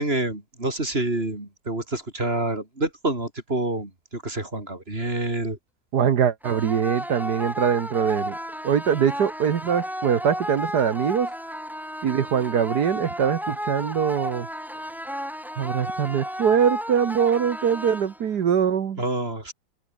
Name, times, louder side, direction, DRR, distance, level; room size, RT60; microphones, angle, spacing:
voice 1, 0.0-5.6 19.0-19.5, right 2 dB, 30° right, 5.2 m, -27 dB
voice 2, 5.9-8.4 8.6-11.3 12.0-14.5 15.6-19.0, right 8 dB, 60° right, 1.7 m, -23 dB
sound 1, 6.4-18.4, equal, ahead, 5.5 m, -33 dB
open air
omnidirectional pair, 2.1 m